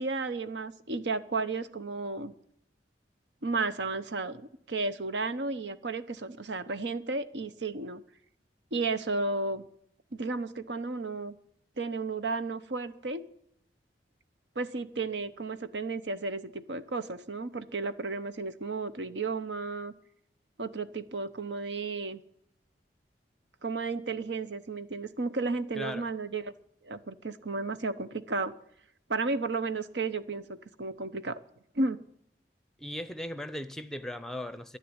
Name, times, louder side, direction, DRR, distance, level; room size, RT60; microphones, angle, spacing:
voice 1, 0.0-2.3 3.4-4.4 4.7-8.0 8.7-9.6 10.1-11.3 11.8-13.3 14.6-19.9 20.6-22.2 23.6-26.5 26.8-28.5 29.1-31.4 31.7-32.0, right 3 dB, 80° right, 0.9 m, -33 dB
voice 2, 25.7-26.1 32.8-34.8, left 1 dB, ahead, 0.7 m, -38 dB
11.5 x 10.0 x 9.7 m
head